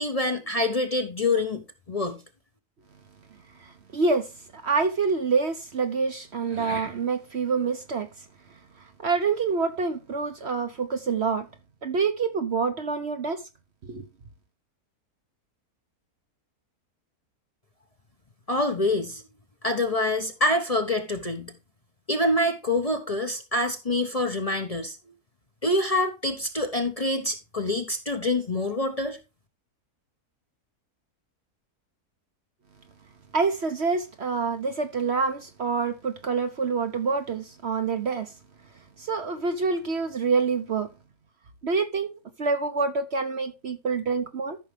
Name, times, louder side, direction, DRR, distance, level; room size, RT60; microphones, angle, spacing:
voice 1, 0.0-1.6 1.9-2.2 18.5-19.2 19.6-21.5 22.1-25.0 25.6-29.2, left 2 dB, 30° left, 0.9 m, -26 dB
voice 2, 3.6-8.1 9.0-11.5 11.8-13.4 13.8-14.0 33.3-38.3 39.0-40.9 41.6-44.6, right 4 dB, 50° right, 1.0 m, -27 dB
13.5 x 6.1 x 3.4 m
omnidirectional pair, 1.6 m